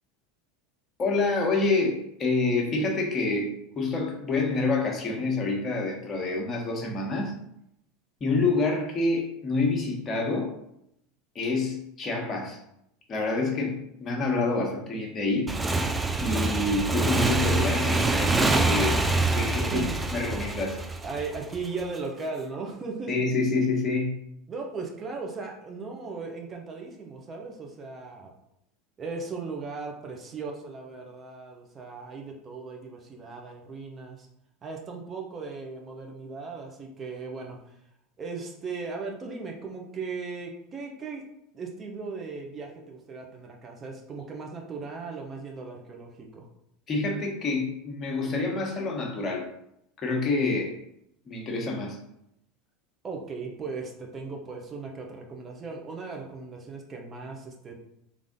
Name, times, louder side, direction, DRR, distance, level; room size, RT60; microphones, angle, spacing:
voice 1, 1.0-7.4 8.2-10.5 11.3-12.6 13.1-15.5 16.2-19.0 19.3-19.8 20.1-20.8 23.1-24.1 46.9-49.5 50.0-50.8 51.3-52.0, left 3 dB, 35° left, 0 dB, 1.3 m, -27 dB
Motorcycle / Engine, 15.5-21.8, right 3 dB, 15° right, 0.5 m, -25 dB
voice 2, 19.4-20.0 21.0-23.1 24.5-28.3 29.0-34.3 34.6-37.8 38.2-41.3 41.5-46.5 53.0-57.8, right 4 dB, 30° right, 1 dB, 1.1 m, -37 dB
3.5 x 3.4 x 3.9 m, 0.76 s
hypercardioid pair, 80°, 0 cm